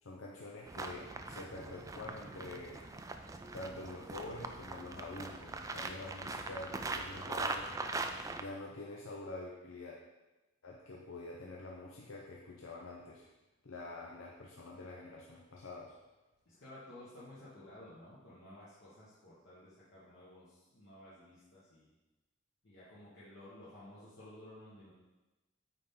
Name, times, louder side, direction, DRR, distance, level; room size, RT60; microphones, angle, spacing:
voice 1, 0.0-2.9 3.5-7.7 8.0-10.0 10.6-13.3 13.6-16.0, left 2 dB, 85° left, -2 dB, 0.8 m, -46 dB
sound 1, 0.7-8.4, right 3 dB, 15° right, 0.3 m, -41 dB
voice 2, 16.4-21.9 22.6-24.9, left 1 dB, 65° left, -9 dB, 1.5 m, -54 dB
9.0 x 4.3 x 3.8 m, 1.1 s
head